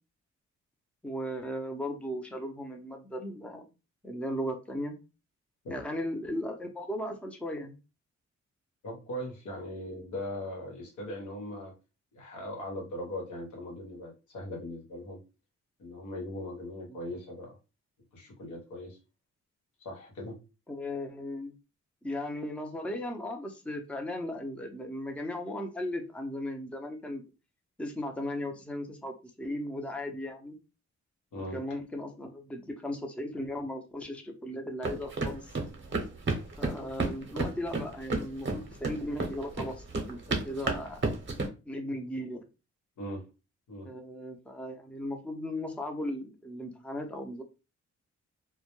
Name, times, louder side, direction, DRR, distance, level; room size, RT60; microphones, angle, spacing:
voice 1, 1.0-3.7 4.0-5.0 5.7-7.8 16.9-17.2 20.7-21.5 22.0-27.2 27.8-30.6 31.5-35.5 36.6-41.0 41.7-42.4 43.8-47.4, left 1 dB, 5° left, 4 dB, 0.5 m, -37 dB
voice 2, 8.8-11.7 12.1-15.2 15.8-17.6 18.1-19.0 19.8-20.4 31.3-31.6 43.0-43.3 43.7-43.9, left 1 dB, 85° left, 0 dB, 1.0 m, -39 dB
sound 1, 34.8-41.5, right 3 dB, 40° right, 0.8 m, -32 dB
2.2 x 2.1 x 3.0 m, 0.30 s
cardioid pair, 75°, 29 cm